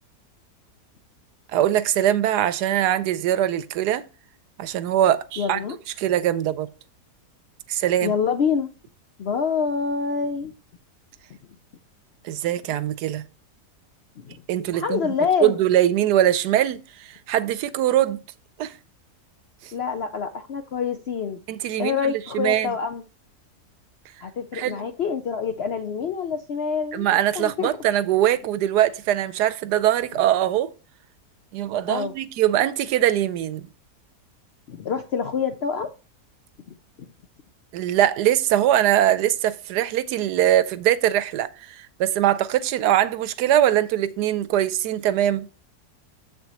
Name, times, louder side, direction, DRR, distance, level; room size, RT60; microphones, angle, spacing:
voice 1, 1.5-4.0 4.6-5.6 6.0-6.7 7.7-8.1 12.2-13.2 14.5-15.0 15.4-18.2 18.6-18.8 19.6-19.7 21.5-22.7 24.5-24.8 26.9-30.7 31.5-33.7 37.7-45.5, right 12 dB, 85° right, 1.2 m, -22 dB
voice 2, 5.4-5.8 8.0-8.7 9.2-10.5 14.2-14.4 14.7-15.6 19.7-21.4 21.8-23.0 24.2-27.1 27.3-27.7 31.9-32.1 34.7-35.9 36.7-36.8, left 6 dB, 70° left, 0.6 m, -26 dB
7.5 x 6.9 x 2.9 m
omnidirectional pair, 1.7 m